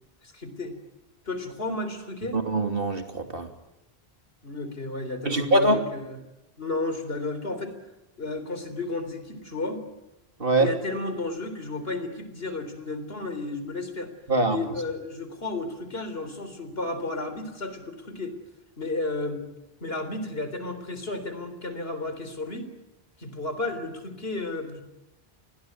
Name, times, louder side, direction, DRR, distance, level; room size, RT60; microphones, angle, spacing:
voice 1, 0.2-0.8 1.3-2.4 4.4-6.2 6.6-7.7 8.2-9.8 10.6-14.1 14.5-18.4 18.8-19.5 19.8-22.7 23.2-24.8, left 2 dB, 65° left, 10 dB, 3.9 m, -32 dB
voice 2, 2.3-3.5 5.2-5.8 10.4-10.7 14.3-14.6, right 1 dB, 60° right, 6 dB, 3.1 m, -23 dB
29.5 x 21.0 x 9.5 m, 0.95 s
omnidirectional pair, 1.1 m